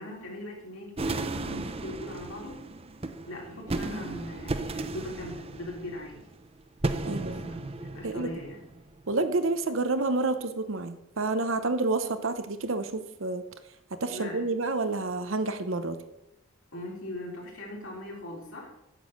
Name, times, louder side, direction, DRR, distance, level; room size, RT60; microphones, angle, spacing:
voice 1, 0.0-2.6 3.3-6.2 7.0-8.6 14.1-14.4 16.7-18.7, left 1 dB, 70° left, -2 dB, 3.4 m, -40 dB
sound 1, 1.0-9.2, right 2 dB, 25° right, 0.6 m, -35 dB
voice 2, 7.0-7.5 8.0-8.3 9.1-13.4 14.0-16.0, right 3 dB, 65° right, 10 dB, 0.9 m, -29 dB
9.0 x 7.1 x 6.5 m, 0.89 s
head